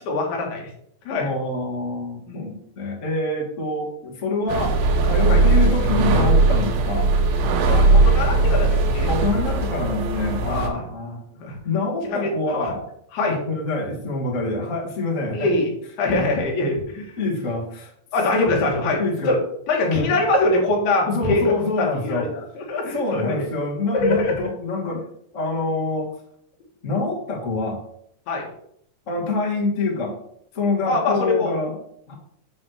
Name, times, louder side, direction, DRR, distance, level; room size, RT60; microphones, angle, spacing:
voice 1, 0.1-0.6 1.1-1.3 2.3-2.5 5.3-5.4 7.7-9.1 10.5-10.8 11.4-11.6 12.0-12.7 13.1-13.4 15.3-15.7 16.0-17.0 18.1-19.0 19.3-19.4 19.7-23.4 23.9-24.3 28.3-28.5 30.9-31.5, left 2 dB, 85° left, 0 dB, 3.8 m, -23 dB
voice 2, 1.2-7.1 9.1-11.2 11.6-12.8 13.3-15.5 17.2-17.9 19.0-19.4 19.8-20.2 21.0-22.3 22.9-25.0 25.3-26.1 26.8-27.8 29.1-30.1 30.5-31.8 32.1-32.2, left 3 dB, 55° left, -2 dB, 0.8 m, -26 dB
sound 1, 4.5-10.7, right 3 dB, 80° right, 2.9 m, -18 dB
9.4 x 3.4 x 6.3 m, 0.69 s
omnidirectional pair, 4.4 m